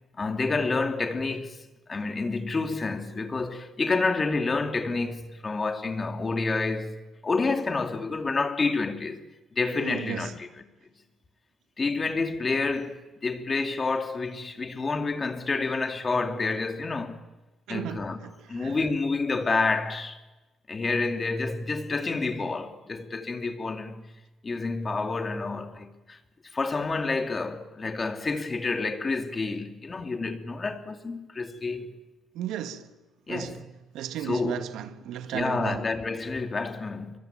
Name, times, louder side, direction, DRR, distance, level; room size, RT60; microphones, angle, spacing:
voice 1, 0.2-7.0 7.2-9.2 9.5-10.5 11.8-17.2 17.7-18.2 18.5-20.2 20.7-24.1 24.4-26.2 26.4-32.0 33.3-33.6 34.2-34.6 35.3-37.1, left 3 dB, 30° left, 2.7 m, -29 dB
voice 2, 9.8-10.3 17.7-18.9 32.3-32.9 33.3-33.7 33.9-35.9, right 10 dB, 85° right, 1.7 m, -35 dB
24.5 x 23.0 x 9.0 m
cardioid pair, 90°, 0 cm